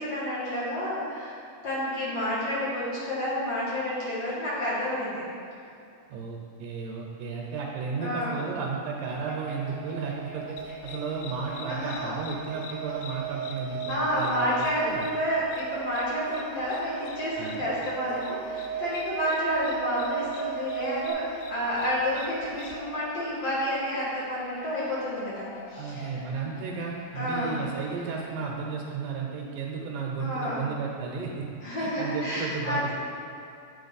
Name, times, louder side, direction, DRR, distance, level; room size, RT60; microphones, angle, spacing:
voice 1, 0.0-1.4 1.6-5.2 8.0-8.4 11.7-12.2 13.9-26.2 27.2-27.6 30.2-30.6 31.6-32.9, left 1 dB, 50° left, -9 dB, 2.3 m, -30 dB
voice 2, 6.1-15.1 17.4-17.7 25.8-31.5 31.8-32.9, right 5 dB, 75° right, -1 dB, 2.1 m, -34 dB
sound 1, 7.8-21.1, right 8 dB, 50° right, 1.2 m, -37 dB
sound 2, 9.1-28.4, left 2 dB, 70° left, 1.0 m, -48 dB
sound 3, 10.6-22.8, left 5 dB, 85° left, 2.2 m, -46 dB
9.3 x 4.6 x 4.1 m, 2.6 s
omnidirectional pair, 3.9 m